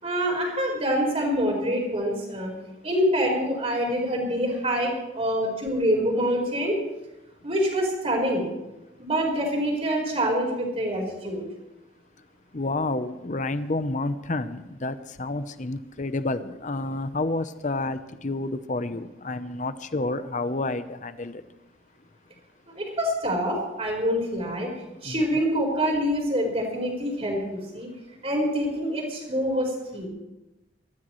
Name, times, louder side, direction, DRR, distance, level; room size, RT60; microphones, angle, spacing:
voice 1, 0.0-2.5 2.8-6.7 7.4-8.5 9.0-11.4 22.7-24.7 25.0-27.9 28.2-30.1, equal, 30° right, 0 dB, 4.6 m, -26 dB
voice 2, 12.5-21.4 25.0-25.2, left 2 dB, 40° left, 12 dB, 0.8 m, -29 dB
23.0 x 14.0 x 3.2 m, 1.0 s
head